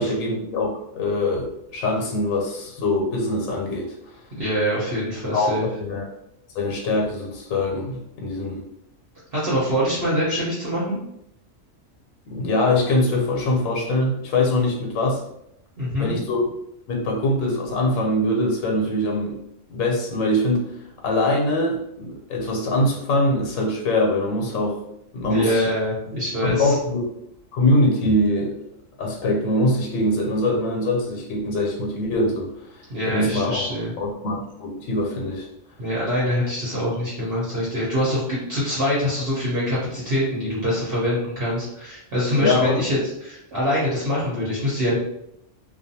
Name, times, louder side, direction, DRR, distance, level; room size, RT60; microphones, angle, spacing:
voice 1, 0.0-3.9 5.3-5.5 5.8-6.0 6.5-8.6 12.3-15.2 16.0-16.4 16.9-19.4 19.7-20.7 21.0-24.8 25.1-25.7 26.5-27.1 27.5-28.6 29.0-33.7 34.0-35.5 42.4-42.8, left 1 dB, 85° left, 0 dB, 1.0 m, -23 dB
voice 2, 4.4-5.7 9.3-11.0 15.8-16.1 25.3-26.8 32.9-33.9 35.8-45.0, equal, 50° right, -8 dB, 1.0 m, -24 dB
2.5 x 2.2 x 2.7 m, 0.79 s
omnidirectional pair, 1.3 m